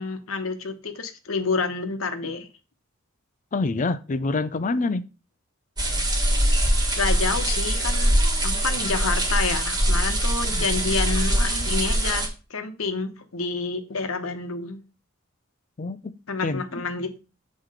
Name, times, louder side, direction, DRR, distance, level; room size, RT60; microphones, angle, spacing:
voice 1, 0.0-2.5 7.0-8.1 8.4-14.8 16.3-17.2, left 4 dB, 80° left, 1.0 m, -28 dB
voice 2, 3.5-5.0 10.5-10.7 15.8-16.1 16.4-16.6, left 3 dB, 40° left, 0.5 m, -26 dB
sound 1, 5.8-12.3, right 1 dB, 20° right, 1.4 m, -23 dB
7.4 x 3.2 x 4.9 m
head